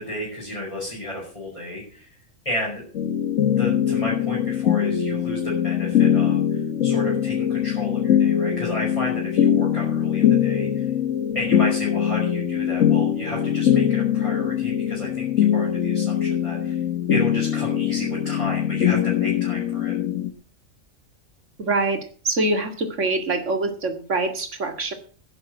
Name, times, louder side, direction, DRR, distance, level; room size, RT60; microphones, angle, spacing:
voice 1, 0.0-2.1 2.4-2.8 3.5-10.9 11.3-16.8 17.1-20.0, left 1 dB, 25° left, -6 dB, 5.6 m, -32 dB
sound 1, 2.9-20.3, left 9 dB, 75° left, 1.4 m, -22 dB
voice 2, 21.6-24.9, right 2 dB, 70° right, 6 dB, 2.5 m, -24 dB
11.0 x 9.5 x 7.7 m, 0.42 s
omnidirectional pair, 1.3 m